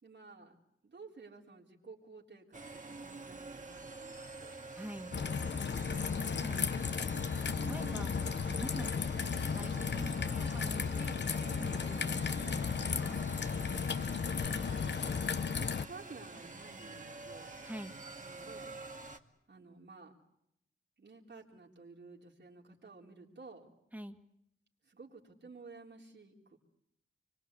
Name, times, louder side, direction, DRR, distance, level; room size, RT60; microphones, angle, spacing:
voice 1, 0.0-0.6 0.8-4.6 5.0-6.8 14.2-15.0 15.5-17.5 18.2-18.7 19.5-20.1 21.0-23.7 24.8-26.6, right 4 dB, 60° right, 0 dB, 4.0 m, -54 dB
sound 1, 2.5-19.2, right 3 dB, 40° right, 2.1 m, -48 dB
voice 2, 4.7-5.1 6.4-6.7 7.7-8.1 8.5-9.2 9.5-11.2 11.6-13.2 17.6-17.9 23.9-24.2, equal, 10° right, 7 dB, 2.1 m, -45 dB
Raindrop / Trickle dribble, 5.1-15.9, left 6 dB, 60° left, 0.9 m, -34 dB
26.5 x 23.0 x 8.4 m, 0.76 s
cardioid pair, 60°, 21 cm